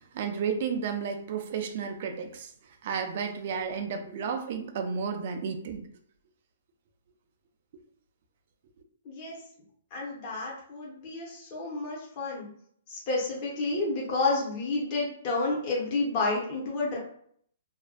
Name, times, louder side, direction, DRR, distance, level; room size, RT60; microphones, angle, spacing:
voice 1, 0.1-2.5 2.8-5.8, right 6 dB, 40° right, 6 dB, 0.3 m, -32 dB
voice 2, 9.0-9.4 9.9-12.5 12.9-17.0, left 3 dB, 25° left, -4 dB, 0.6 m, -30 dB
2.4 x 2.2 x 2.3 m, 0.62 s
hypercardioid pair, 175°, 0 cm